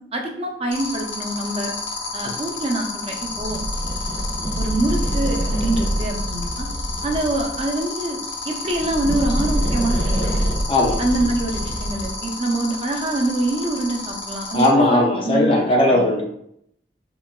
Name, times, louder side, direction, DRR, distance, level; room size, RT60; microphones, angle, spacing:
voice 1, 0.1-1.7 2.1-3.6 4.1-4.2 4.6-6.7 7.0-8.2 8.5-10.3 11.0-16.2, right 1 dB, 35° right, 2 dB, 0.4 m, -25 dB
sound 1, 0.7-14.7, left 4 dB, 90° left, 0.7 m, -31 dB
sound 2, 3.2-7.7 8.6-12.3, right 1 dB, 75° right, 0.9 m, -25 dB
voice 2, 14.5-16.2, left 1 dB, 30° left, 0 dB, 0.4 m, -17 dB
3.8 x 2.2 x 2.2 m, 0.72 s
head